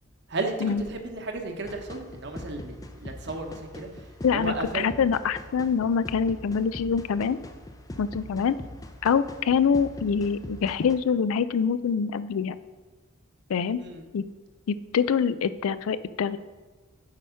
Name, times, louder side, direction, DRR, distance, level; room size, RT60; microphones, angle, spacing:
voice 1, 0.3-4.0 4.3-4.9 13.8-14.0, right 2 dB, 55° right, 4 dB, 1.0 m, -34 dB
sound 1, 1.7-10.9, left 1 dB, 15° left, 0.5 m, -42 dB
voice 2, 4.2-7.4 8.0-8.6 9.0-12.6 13.5-13.8 14.1-14.2 14.7-16.4, left 6 dB, 80° left, 15 dB, 0.4 m, -25 dB
8.4 x 4.8 x 5.6 m, 1.3 s
head